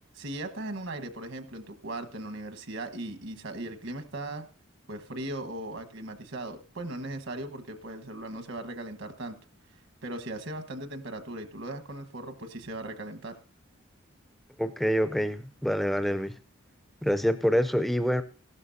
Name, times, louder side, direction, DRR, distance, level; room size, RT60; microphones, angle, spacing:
voice 1, 0.1-4.5 4.9-9.4 10.0-13.3, right 1 dB, 70° right, 6 dB, 1.4 m, -38 dB
voice 2, 14.6-16.4 17.0-18.2, equal, ahead, 12 dB, 0.5 m, -26 dB
16.0 x 12.0 x 2.7 m, 0.37 s
head